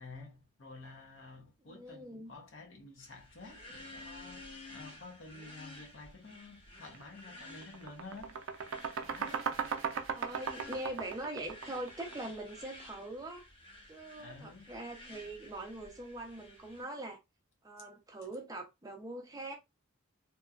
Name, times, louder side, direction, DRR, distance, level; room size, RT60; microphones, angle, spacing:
voice 1, 0.0-9.9 10.2-10.3 14.2-14.7, left 3 dB, 65° left, 0.8 m, -51 dB
voice 2, 1.6-2.3 10.1-13.4 13.9-17.2 17.6-19.5, right 1 dB, 20° right, 0.5 m, -42 dB
sound 1, 3.0-16.8, left 2 dB, 25° left, 1.0 m, -53 dB
sound 2, 6.9-7.1 7.4-12.4, right 6 dB, 75° right, 0.4 m, -37 dB
2.9 x 2.2 x 2.3 m
head